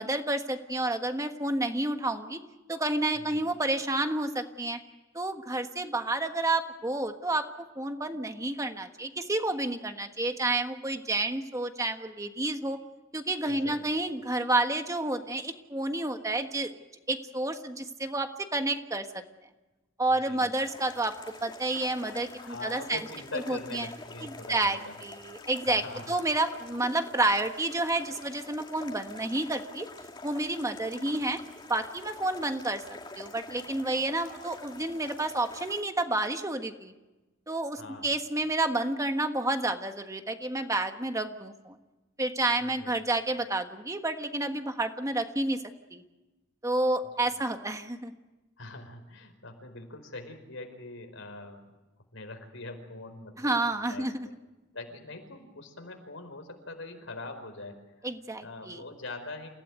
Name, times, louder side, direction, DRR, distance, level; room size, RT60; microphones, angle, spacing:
voice 1, 0.0-2.4 2.7-4.8 5.1-12.8 13.1-16.7 17.1-19.2 20.0-21.1 21.4-23.0 23.5-23.9 24.2-29.9 30.2-31.4 31.7-36.9 37.5-41.8 42.2-45.6 45.9-46.0 46.6-48.1 53.4-54.3 58.0-58.8, right 2 dB, 15° right, 6 dB, 1.4 m, -30 dB
voice 2, 13.5-13.8 20.1-20.5 22.3-25.0 25.7-26.2 37.8-38.1 42.6-42.9 47.2-47.3 48.6-51.7 52.1-54.3 54.7-58.1 58.4-59.5, left 2 dB, 85° left, 5 dB, 4.9 m, -43 dB
sound 1, 20.6-35.8, left 2 dB, 25° left, 2.4 m, -47 dB
28.5 x 16.5 x 9.3 m, 1.1 s
head